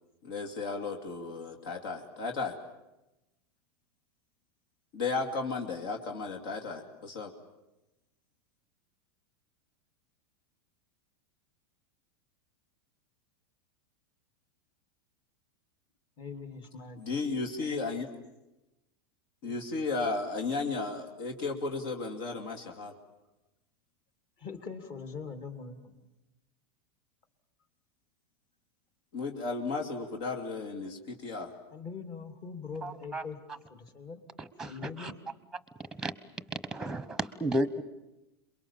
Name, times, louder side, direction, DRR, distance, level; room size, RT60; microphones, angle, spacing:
voice 1, 0.2-2.5 4.9-7.3 17.0-18.1 19.4-22.9 29.1-31.5, left 3 dB, 60° left, 2 dB, 2.6 m, -34 dB
voice 2, 16.2-17.2 19.4-19.6 24.4-26.0 31.7-33.4 33.7-34.2 34.6-35.2, left 5 dB, 35° left, 7 dB, 2.8 m, -42 dB
voice 3, 32.8-33.2 34.6-35.1 36.0-36.1 36.7-37.8, right 1 dB, 5° right, 14 dB, 1.1 m, -33 dB
28.0 x 22.5 x 7.3 m, 0.98 s
supercardioid pair, 140°, 14 cm